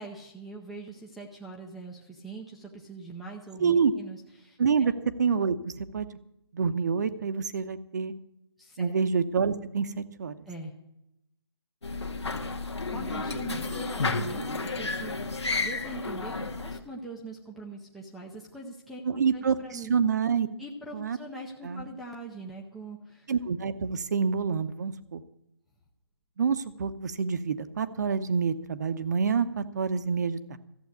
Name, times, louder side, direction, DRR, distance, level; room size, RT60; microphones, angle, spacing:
voice 1, 0.0-4.9 8.6-8.9 10.5-10.7 12.9-19.0 19.3-20.0 20.6-23.3, right 2 dB, ahead, -3 dB, 0.6 m, -42 dB
voice 2, 3.6-3.9 4.6-4.9 5.2-6.1 6.5-8.1 8.8-10.4 19.0-20.5 20.9-21.2 21.6-21.9 23.3-25.2 26.4-30.6, right 6 dB, 40° right, 11 dB, 0.9 m, -27 dB
sound 1, 11.8-16.8, left 3 dB, 80° left, 1.7 m, -32 dB
14.5 x 8.0 x 8.0 m, 0.83 s
figure-of-eight pair, 160°, 14 cm